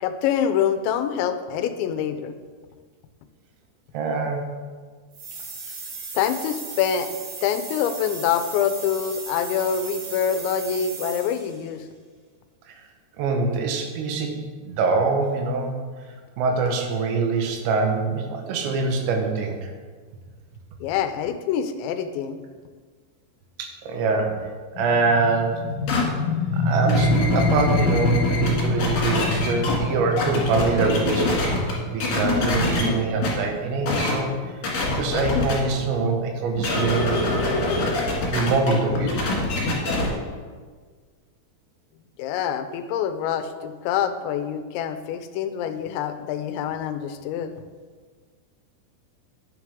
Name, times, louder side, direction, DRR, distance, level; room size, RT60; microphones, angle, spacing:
voice 1, 0.0-2.3 6.1-7.1 7.4-11.9 20.8-22.4 42.2-47.5, left 8 dB, 85° left, 9 dB, 3.0 m, -25 dB
voice 2, 3.9-4.4 12.7-12.8 13.2-14.4 14.6-15.7 16.4-19.7 23.6-24.5 24.8-25.6 26.5-31.4 31.9-34.3 34.9-37.2 38.3-39.3, right 4 dB, 85° right, 3 dB, 3.4 m, -24 dB
sound 1, 5.1-11.6, right 4 dB, 65° right, 4.6 m, -36 dB
sound 2, 24.8-36.2, left 1 dB, 70° left, 2.8 m, -27 dB
sound 3, 25.9-26.0 26.7-29.8 30.2-31.7 32.0-32.9 33.2-33.3 33.9-34.1 34.6-35.5 36.6-40.1, left 3 dB, 55° left, 3.5 m, -24 dB
10.5 x 9.6 x 3.6 m, 1.5 s
omnidirectional pair, 5.1 m